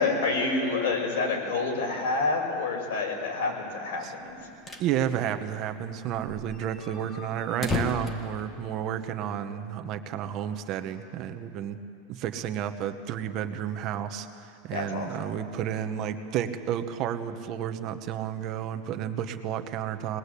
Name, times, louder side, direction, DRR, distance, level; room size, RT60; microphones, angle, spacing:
voice 1, 0.0-4.4 14.7-15.3, left 3 dB, 70° left, 1 dB, 6.0 m, -28 dB
sound 1, 4.3-4.9 5.3-5.4 5.6-5.7 6.1-9.1, left 2 dB, 15° left, 1.7 m, -34 dB
voice 2, 4.8-11.8 12.1-20.2, right 10 dB, 35° right, 8 dB, 1.0 m, -31 dB
23.5 x 20.5 x 8.4 m, 2.6 s
supercardioid pair, 155°, 0 cm